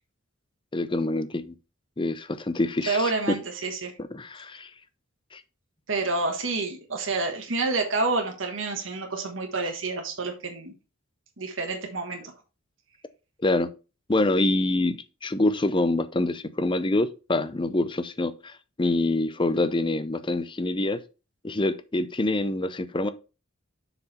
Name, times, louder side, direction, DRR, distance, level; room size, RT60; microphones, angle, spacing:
voice 1, 0.7-1.5 2.0-3.1 4.0-4.7 5.3-5.4 13.4-13.7 14.1-21.0 21.4-23.1, left 2 dB, 25° left, 0.6 m, -26 dB
voice 2, 2.9-3.9 5.9-10.7 11.4-12.3, right 3 dB, 70° right, 1.5 m, -28 dB
6.7 x 4.8 x 4.2 m
head